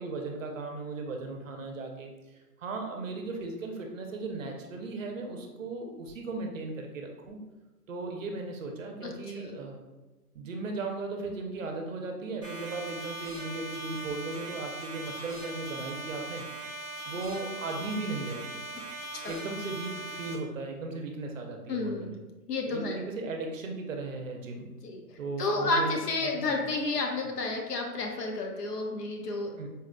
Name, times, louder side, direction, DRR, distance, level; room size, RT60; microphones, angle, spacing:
voice 1, 0.0-7.4 7.9-9.8 10.3-16.5 17.1-18.6 19.3-22.0 22.7-24.7 25.2-26.0 26.2-26.6 29.6-29.7, right 3 dB, 55° right, 3 dB, 0.5 m, -37 dB
voice 2, 9.0-9.6 19.2-19.4 21.7-22.2 22.5-23.0 24.8-29.5, left 3 dB, 85° left, 2 dB, 0.8 m, -31 dB
sound 1, 12.4-20.3, right 2 dB, 20° left, 0.5 m, -40 dB
4.0 x 2.0 x 2.5 m, 1.1 s
hypercardioid pair, 165°, 47 cm